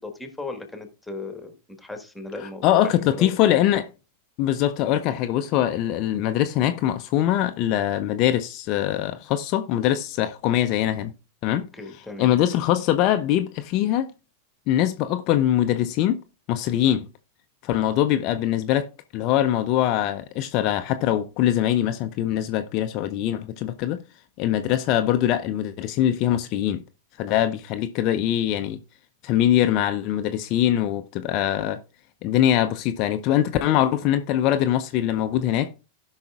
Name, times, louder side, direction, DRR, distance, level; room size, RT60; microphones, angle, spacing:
voice 1, 0.0-3.3 11.7-12.3, left 3 dB, 5° left, 1.5 m, -37 dB
voice 2, 2.6-3.9 4.4-11.1 11.4-11.7 12.2-14.1 14.7-16.2 16.5-17.1 17.6-24.0 24.4-26.8 27.2-28.8 29.2-31.8 32.2-35.7, left 12 dB, 40° left, 0.6 m, -22 dB
17.0 x 5.7 x 2.4 m
figure-of-eight pair, 90°, 0 cm